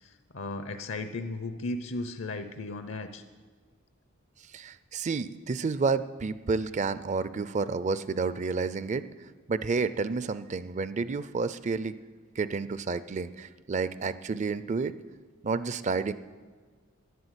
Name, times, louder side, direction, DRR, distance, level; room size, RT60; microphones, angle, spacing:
voice 1, 0.0-3.2, left 2 dB, 65° left, 9 dB, 0.7 m, -36 dB
voice 2, 4.5-9.0 9.5-12.0 12.4-15.0 15.4-16.1, right 4 dB, 35° right, 15 dB, 0.4 m, -30 dB
11.0 x 11.0 x 8.1 m, 1.5 s
head